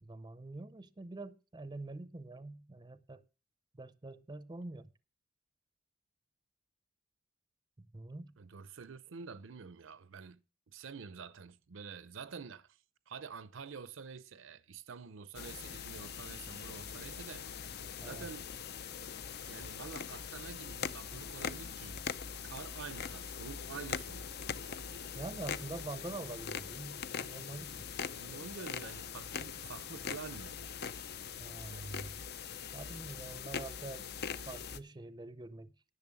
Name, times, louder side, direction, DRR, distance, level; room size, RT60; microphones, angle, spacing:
voice 1, 0.0-3.2 3.8-4.9 7.8-8.4 18.0-18.3 25.1-27.9 31.4-32.1 32.7-34.1 34.5-35.7, right 2 dB, 20° right, 0.6 m, -45 dB
voice 2, 8.4-10.4 10.7-17.5 18.0-18.4 19.5-22.0 22.4-24.3 28.2-30.6, right 5 dB, 75° right, 0.6 m, -48 dB
sound 1, 15.3-34.8, left 7 dB, 55° left, 0.6 m, -42 dB
11.0 x 6.7 x 6.9 m
head